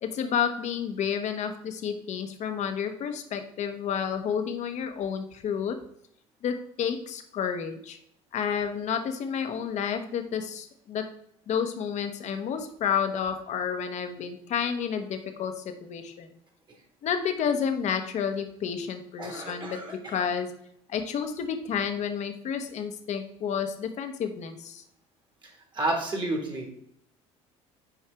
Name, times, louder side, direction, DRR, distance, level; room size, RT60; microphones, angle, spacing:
voice 1, 0.0-5.8 6.4-8.0 8.3-11.1 11.5-16.3 17.0-20.5 20.9-24.8, left 7 dB, 50° left, 7 dB, 0.9 m, -30 dB
voice 2, 19.2-19.9 25.7-26.7, right 2 dB, 30° right, 2 dB, 1.8 m, -30 dB
5.8 x 4.7 x 3.4 m, 0.71 s
supercardioid pair, 80°, 15 cm